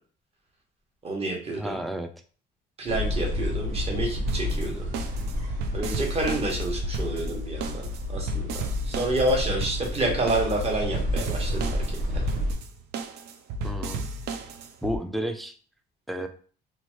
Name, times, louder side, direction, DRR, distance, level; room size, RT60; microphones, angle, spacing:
voice 1, 1.0-1.8 2.8-5.0 5.7-11.8 12.1-12.2, right 2 dB, 35° right, 0 dB, 1.1 m, -29 dB
voice 2, 1.6-2.1 13.6-14.0 14.8-15.5 16.1-16.3, equal, ahead, 6 dB, 0.3 m, -31 dB
sound 1, 2.9-12.5, left 1 dB, 50° right, 1.0 m, -30 dB
sound 2, 4.3-15.0, right 2 dB, 80° right, 0.4 m, -34 dB
2.8 x 2.3 x 3.1 m, 0.41 s
cardioid pair, 110°, 17 cm